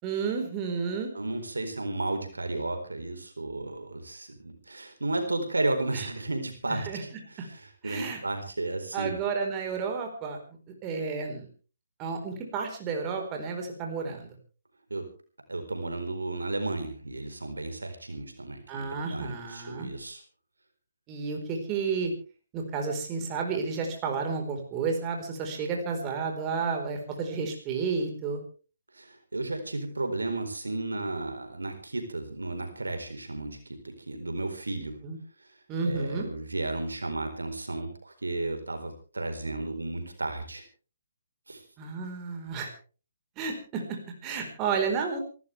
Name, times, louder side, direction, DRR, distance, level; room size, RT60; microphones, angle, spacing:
voice 1, 0.0-1.1 5.9-6.1 6.7-7.0 7.4-7.5 7.8-8.2 8.9-10.4 10.8-11.5 12.0-14.3 18.7-19.9 21.1-22.1 22.5-28.4 35.0-35.2 35.7-36.2 41.8-42.7 43.4-44.0 44.2-45.2, right 5 dB, 20° right, 2 dB, 4.4 m, -31 dB
voice 2, 1.1-9.1 14.9-15.1 15.5-20.2 28.9-33.6 33.8-35.0 35.8-40.6 41.5-41.6, right 2 dB, 80° right, 6 dB, 4.3 m, -33 dB
27.5 x 13.0 x 3.4 m, 0.36 s
figure-of-eight pair, 140°, 0 cm